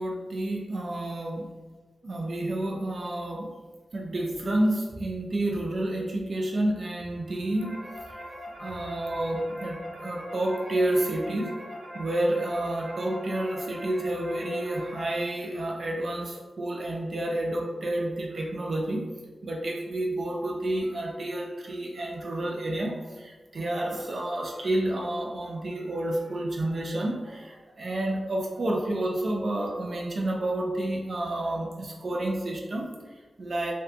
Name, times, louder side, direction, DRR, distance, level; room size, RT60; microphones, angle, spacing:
voice 1, 0.0-1.5 2.0-3.5 3.9-7.8 8.1-8.2 8.6-19.1 19.4-33.7, right 1 dB, 50° right, -1 dB, 0.3 m, -30 dB
sound 1, 7.2-15.0, equal, 30° right, 0.8 m, -41 dB
2.6 x 2.2 x 2.5 m, 1.3 s
wide cardioid pair, 135°, 0 cm